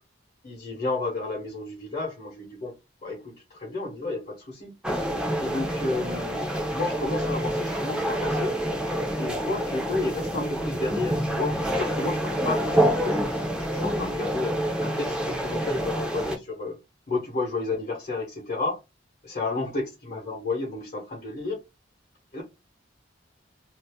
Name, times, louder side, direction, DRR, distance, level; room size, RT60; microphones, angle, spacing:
voice 1, 0.4-2.7 3.0-5.1 5.4-8.6 9.2-16.8 17.1-18.8 19.2-21.6 22.3-22.4, left 3 dB, 45° left, 1.1 m, -32 dB
sound 1, 4.8-16.4, right 1 dB, 5° right, 0.6 m, -27 dB
2.7 x 2.5 x 3.4 m
head